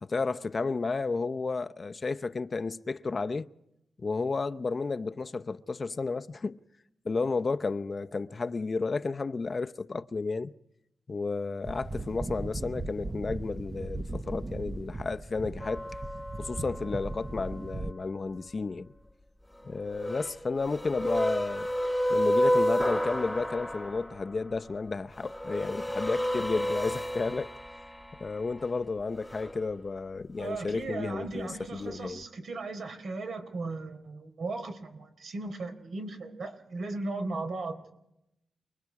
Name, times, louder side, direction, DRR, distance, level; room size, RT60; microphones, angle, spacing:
voice 1, 0.0-3.5 4.0-6.6 7.0-10.5 11.1-15.8 16.4-18.9 19.6-21.7 22.1-27.5 28.2-32.2, left 4 dB, 40° left, 0.7 m, -32 dB
sound 1, 11.6-17.9, right 2 dB, 25° right, 0.8 m, -38 dB
sound 2, 15.6-17.3 19.7-24.3 25.2-28.7 29.2-29.6, equal, 5° left, 1.2 m, -31 dB
voice 2, 30.4-37.8, right 3 dB, 70° right, 4.0 m, -37 dB
29.0 x 21.5 x 4.8 m
wide cardioid pair, 100°, 0 cm